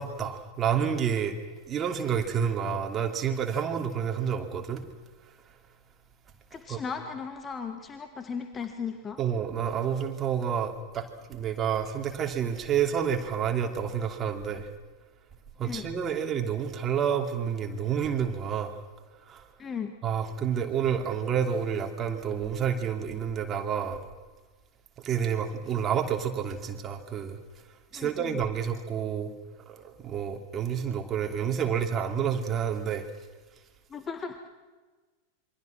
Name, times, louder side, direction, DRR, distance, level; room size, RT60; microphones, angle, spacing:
voice 1, 0.0-1.4 1.7-4.8 6.7-6.8 9.2-14.7 15.6-18.7 19.3-19.4 20.0-24.0 25.0-27.4 27.9-29.3 29.7-33.0, right 8 dB, 25° right, 4 dB, 2.9 m, -29 dB
voice 2, 6.5-9.2 15.6-15.9 19.6-20.0 27.9-28.4 33.9-34.5, left 6 dB, 20° left, 7 dB, 1.7 m, -36 dB
27.5 x 24.0 x 6.1 m, 1.3 s
figure-of-eight pair, 90°, 0 cm